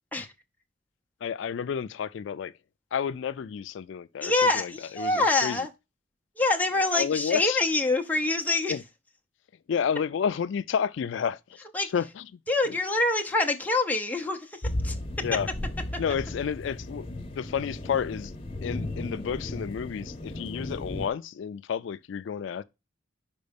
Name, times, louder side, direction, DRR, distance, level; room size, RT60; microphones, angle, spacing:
voice 1, 1.2-2.5 2.9-5.7 6.9-7.6 8.7-8.8 9.7-11.4 11.8-12.3 12.7-12.8 15.2-15.5 16.0-18.3 18.6-22.6, left 7 dB, 70° left, 0.3 m, -31 dB
voice 2, 4.2-5.7 6.4-8.7 11.7-11.9 12.5-15.2, left 2 dB, 10° left, 0.7 m, -26 dB
sound 1, 14.6-21.1, left 1 dB, 30° left, 1.0 m, -35 dB
5.2 x 4.8 x 5.1 m
head